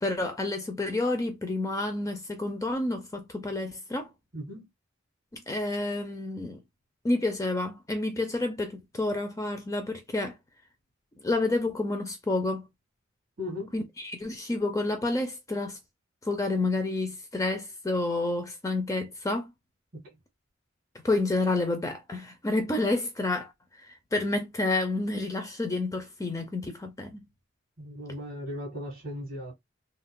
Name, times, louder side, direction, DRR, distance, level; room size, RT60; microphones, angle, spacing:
voice 1, 0.0-4.1 5.3-6.6 7.0-10.4 11.2-12.7 13.7-15.8 16.2-19.5 21.0-23.5 23.9-27.3, left 2 dB, 15° left, 0.5 m, -29 dB
voice 2, 4.3-4.7 13.4-13.7 19.9-20.1 27.8-29.5, left 1 dB, 50° right, 1.7 m, -37 dB
3.6 x 2.3 x 2.2 m
head